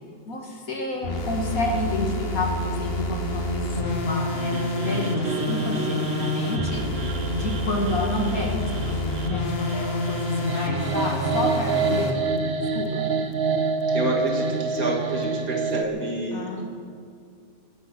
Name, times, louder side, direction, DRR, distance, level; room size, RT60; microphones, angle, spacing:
voice 1, 0.3-6.8 7.3-12.1 12.4-13.1 16.3-16.6, left 2 dB, 75° left, 0 dB, 2.7 m, -30 dB
sound 1, 1.0-12.2, left 2 dB, 45° left, 1.8 m, -28 dB
sound 2, 3.9-15.9, right 4 dB, 45° right, 0.9 m, -28 dB
voice 2, 13.9-16.6, right 2 dB, 85° right, 0 dB, 2.8 m, -28 dB
23.0 x 9.3 x 6.3 m, 2.2 s
omnidirectional pair, 1.5 m